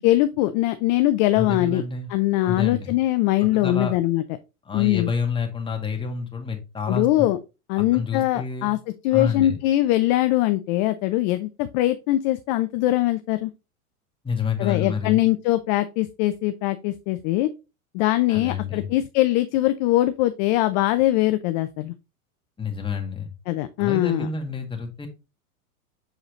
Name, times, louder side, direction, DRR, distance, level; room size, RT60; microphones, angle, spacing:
voice 1, 0.0-1.8 2.1-4.2 4.7-5.1 6.9-7.4 7.7-8.8 9.0-13.5 14.6-17.5 17.9-21.9 23.5-24.3, left 16 dB, 35° left, 10 dB, 0.4 m, -22 dB
voice 2, 1.3-2.1 2.4-3.0 3.5-3.9 4.7-7.3 7.9-8.7 9.1-9.6 14.2-15.2 18.3-18.9 22.6-23.3 23.8-25.1, left 5 dB, 10° left, 3 dB, 1.7 m, -28 dB
6.5 x 4.8 x 3.0 m, 0.28 s
hypercardioid pair, 95°, 44 cm